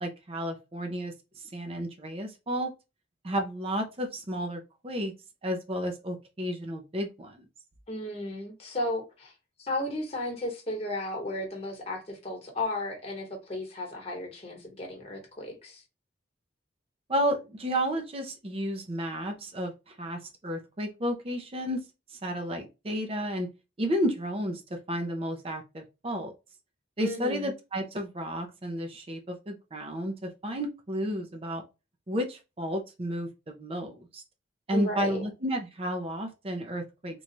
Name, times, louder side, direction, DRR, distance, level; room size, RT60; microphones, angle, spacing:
voice 1, 0.0-2.7 3.2-5.1 5.4-7.4 17.1-21.8 22.1-23.5 23.8-26.3 27.0-31.6 32.1-34.2 34.7-37.2, equal, 30° right, 0.6 m, -32 dB
voice 2, 7.9-9.3 9.6-15.8 27.0-27.5 34.7-35.2, left 1 dB, 35° left, 1.1 m, -34 dB
3.0 x 2.3 x 4.0 m
head